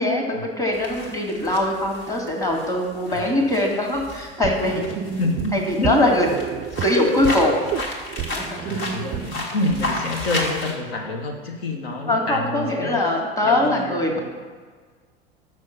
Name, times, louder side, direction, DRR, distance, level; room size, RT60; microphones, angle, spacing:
voice 1, 0.0-4.8 5.5-6.3 6.8-7.6 8.3-8.6 12.1-14.2, left 1 dB, 10° left, 0 dB, 1.8 m, -22 dB
sound 1, 0.7-5.8 6.1-10.7, left 1 dB, 40° left, 1.8 m, -32 dB
voice 2, 3.1-3.4 5.2-6.0 8.6-13.0 13.4-14.2, left 2 dB, 75° left, 1 dB, 1.1 m, -27 dB
sound 2, 4.4-9.3, right 8 dB, 30° right, 0.4 m, -31 dB
6.3 x 6.1 x 5.7 m, 1.5 s
figure-of-eight pair, 75°, 30 cm